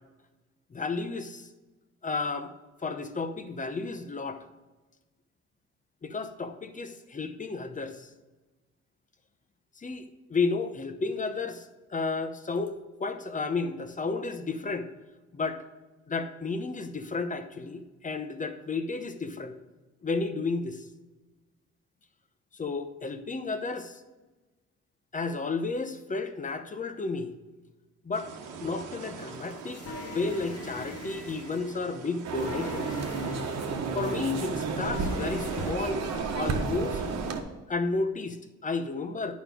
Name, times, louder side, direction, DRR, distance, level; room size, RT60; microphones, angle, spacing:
voice 1, 0.7-1.5 2.0-2.5 2.8-4.4 6.0-8.1 9.8-14.9 15.3-15.6 16.1-19.6 20.0-20.8 22.5-24.0 25.1-27.3 28.0-28.3 28.6-29.8 30.1-32.9 33.9-36.0 36.3-37.0 37.7-39.3, left 3 dB, 25° left, 9 dB, 0.8 m, -32 dB
sound 1, 28.1-37.3, right 5 dB, 90° right, 1.2 m, -44 dB
sound 2, 29.0-35.7, left 2 dB, 50° left, 2.0 m, -43 dB
sound 3, 32.2-37.4, right 4 dB, 60° right, 1.2 m, -31 dB
9.5 x 5.1 x 4.9 m, 1.2 s
cardioid pair, 90°, 30 cm